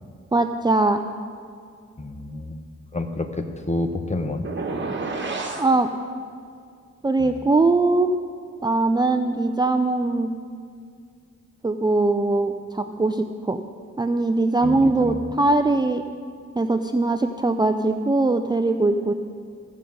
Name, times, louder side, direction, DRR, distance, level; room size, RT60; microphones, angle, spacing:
voice 1, 0.3-1.0 5.6-5.9 7.0-8.1 8.6-10.3 11.6-13.6 14.0-16.0 16.6-19.1, right 2 dB, 15° right, 6 dB, 0.4 m, -21 dB
voice 2, 2.0-2.6 2.9-4.5 7.2-7.4 14.6-15.3, left 2 dB, 25° left, 6 dB, 1.0 m, -29 dB
sound 1, 4.4-5.7, right 3 dB, 40° right, 1.4 m, -29 dB
15.0 x 5.4 x 7.8 m, 2.3 s
wide cardioid pair, 95°, 29 cm